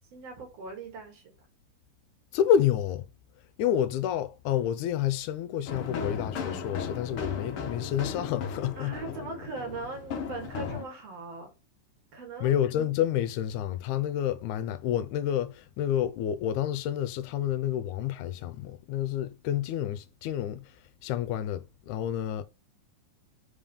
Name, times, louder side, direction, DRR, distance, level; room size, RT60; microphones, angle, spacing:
voice 1, 0.1-1.3 8.8-11.5 12.1-12.6, right 3 dB, 55° right, 2.5 m, -40 dB
voice 2, 2.3-3.1 3.6-8.9 12.4-20.7 21.0-22.4, left 10 dB, 80° left, 2.0 m, -29 dB
sound 1, 5.7-10.8, left 6 dB, 60° left, 1.6 m, -36 dB
5.3 x 3.6 x 5.2 m
omnidirectional pair, 3.6 m